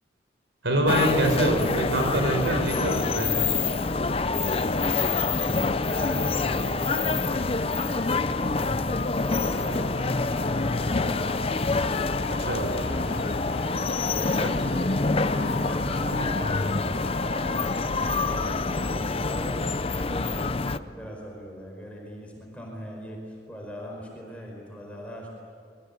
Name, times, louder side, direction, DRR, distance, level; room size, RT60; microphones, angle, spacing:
voice 1, 0.6-3.6 12.4-12.7 14.4-14.5, right 1 dB, 80° right, 3 dB, 4.7 m, -25 dB
sound 1, 0.9-20.8, left 3 dB, 30° left, 0.6 m, -27 dB
sound 2, 3.6-5.2 5.5-14.4 14.9-16.6 17.0-19.3, left 3 dB, 50° left, 2.0 m, -38 dB
voice 2, 5.7-9.9 10.1-10.7 12.0-13.2 14.0-25.3, equal, 5° left, -1 dB, 4.9 m, -40 dB
sound 3, 9.4-18.6, left 3 dB, 85° left, 1.7 m, -37 dB
27.0 x 22.5 x 8.5 m, 2.2 s
head